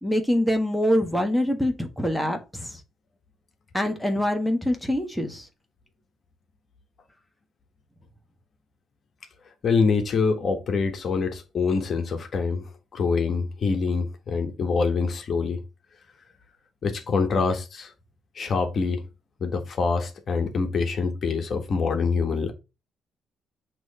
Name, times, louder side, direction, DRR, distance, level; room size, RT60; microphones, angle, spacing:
voice 1, 0.0-2.8 3.7-5.5, equal, ahead, 1.4 m, -24 dB
voice 2, 9.6-15.6 16.8-17.9 18.3-19.0 19.4-22.5, left 4 dB, 50° left, 1.3 m, -25 dB
6.1 x 3.1 x 5.4 m
cardioid pair, 90°, 0 cm